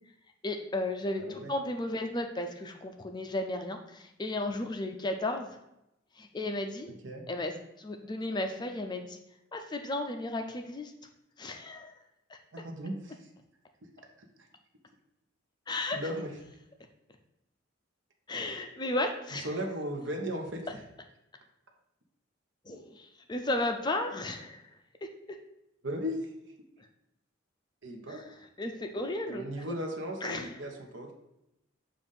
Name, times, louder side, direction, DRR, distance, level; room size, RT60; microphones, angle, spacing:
voice 1, 0.4-5.5 6.2-6.9 7.3-7.5 7.8-9.2 9.5-10.9 11.4-11.9 15.7-16.0 18.3-19.5 22.7-24.6 25.0-25.1 26.8-26.9 28.1-28.2 28.6-29.4 30.2-30.5, left 2 dB, 20° left, 5 dB, 0.4 m, -34 dB
voice 2, 1.2-1.5 6.9-7.2 12.5-13.3 14.4-14.5 15.7-16.3 19.3-20.8 25.8-26.3 27.8-28.2 29.3-31.1, equal, 65° right, 2 dB, 1.0 m, -37 dB
6.9 x 2.5 x 5.5 m, 0.87 s
head